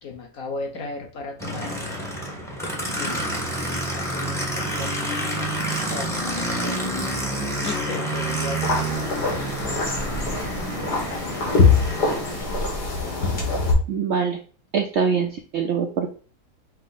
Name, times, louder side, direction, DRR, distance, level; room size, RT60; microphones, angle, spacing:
voice 1, 0.0-1.9 3.0-3.3 3.7-5.5 5.9-6.9 7.6-10.0 11.1-11.7 12.0-12.5 13.0-13.7, left 3 dB, 60° left, 2 dB, 1.4 m, -37 dB
Aircraft, 1.4-12.5, right 1 dB, ahead, 0.7 m, -28 dB
sound 1, 8.6-13.7, left 4 dB, 85° left, 2.0 m, -23 dB
voice 2, 13.9-14.4 14.7-16.1, right 6 dB, 70° right, 4 dB, 0.6 m, -23 dB
5.4 x 2.1 x 4.0 m, 0.39 s
omnidirectional pair, 1.7 m